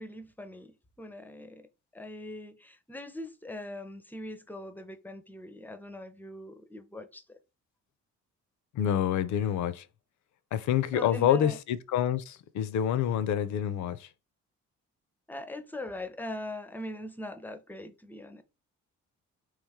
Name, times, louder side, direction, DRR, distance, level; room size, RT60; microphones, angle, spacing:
voice 1, 0.0-1.7 1.9-7.4 10.9-11.6 15.3-18.4, left 1 dB, 5° left, 0.5 m, -41 dB
voice 2, 8.8-9.8 10.5-14.0, left 9 dB, 70° left, 0.5 m, -27 dB
3.4 x 3.2 x 3.5 m
cardioid pair, 90°, 30 cm